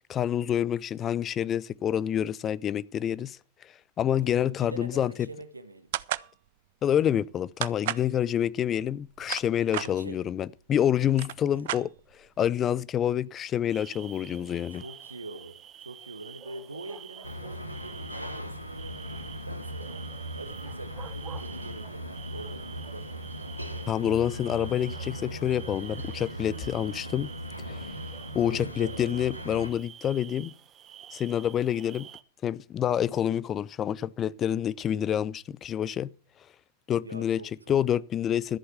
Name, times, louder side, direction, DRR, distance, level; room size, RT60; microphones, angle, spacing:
voice 1, 0.1-3.4 4.0-5.1 6.8-11.9 12.2-14.8 23.9-27.3 27.7-27.9 28.3-30.5 31.1-32.1 32.4-36.1 36.9-37.4 37.7-38.6, left 10 dB, 25° left, 0.6 m, -27 dB
voice 2, 4.3-5.9 9.7-10.2 14.7-20.0 20.3-23.5 28.4-29.0 33.2-33.4 37.0-37.8, right 2 dB, 80° right, 1.3 m, -44 dB
sound 1, 5.9-6.3 7.6-8.1 9.0-9.9 10.7-10.8 11.1-12.3, right 15 dB, 55° right, 0.5 m, -32 dB
sound 2, 13.7-32.2, right 10 dB, 30° right, 1.0 m, -48 dB
sound 3, 17.2-29.7, equal, 90° left, 1.6 m, -38 dB
14.0 x 7.9 x 5.9 m
figure-of-eight pair, 90°, 0 cm